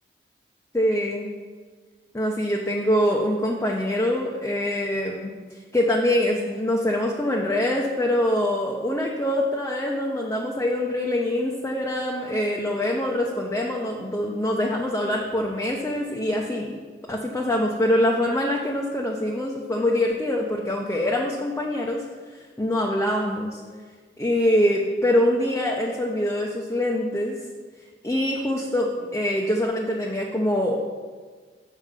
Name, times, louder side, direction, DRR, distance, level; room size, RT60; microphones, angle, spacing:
voice 1, 0.7-1.3 2.1-5.3 5.7-16.8 17.1-22.0 22.6-23.6 24.2-27.4 28.0-30.8, left 1 dB, 15° left, -2 dB, 0.7 m, -24 dB
7.3 x 6.3 x 5.4 m, 1.5 s
head